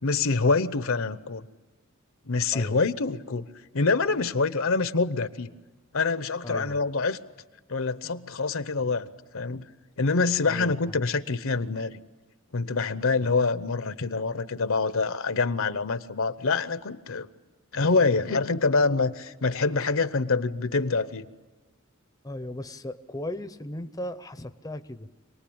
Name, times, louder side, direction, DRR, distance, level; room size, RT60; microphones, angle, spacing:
voice 1, 0.0-1.4 2.3-3.5 3.7-5.5 5.9-7.2 7.7-9.1 9.3-9.7 10.0-12.0 12.5-17.3 17.7-21.3, left 4 dB, 65° left, 13 dB, 0.9 m, -25 dB
voice 2, 6.4-6.8 10.5-11.0 22.2-25.1, left 1 dB, 15° left, 10 dB, 0.7 m, -37 dB
27.0 x 19.5 x 8.7 m, 1.3 s
head